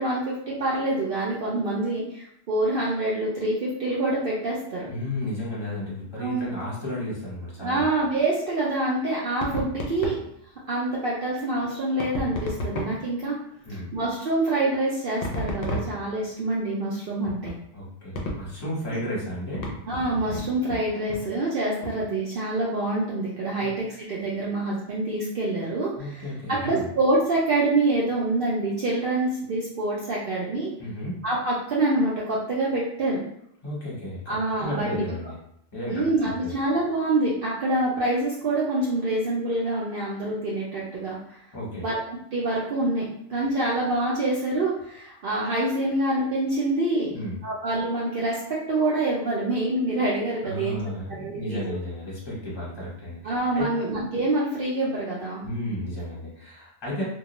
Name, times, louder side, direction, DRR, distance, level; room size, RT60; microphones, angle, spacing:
voice 1, 0.0-4.9 6.2-6.5 7.6-10.2 10.7-13.4 13.9-17.5 19.9-26.2 26.5-30.7 31.2-33.2 34.3-35.0 35.9-41.4 41.8-42.0 42.3-47.1 47.4-50.8 51.2-51.6 53.2-55.4, right 2 dB, 60° right, -6 dB, 0.6 m, -26 dB
voice 2, 4.9-7.9 13.6-13.9 17.7-19.7 23.6-23.7 26.0-26.9 30.8-31.3 33.6-35.3 35.7-36.6 41.5-41.9 47.1-47.4 50.4-53.7 55.4-57.0, left 1 dB, 20° left, -6 dB, 0.9 m, -33 dB
sound 1, 9.4-10.3 12.0-13.1 15.2-16.3 17.2-17.6 18.2-18.6 19.6-20.8 21.1-21.3 21.8-22.1, left 1 dB, 60° left, 0.7 m, -32 dB
2.2 x 2.2 x 2.9 m, 0.75 s
omnidirectional pair, 1.3 m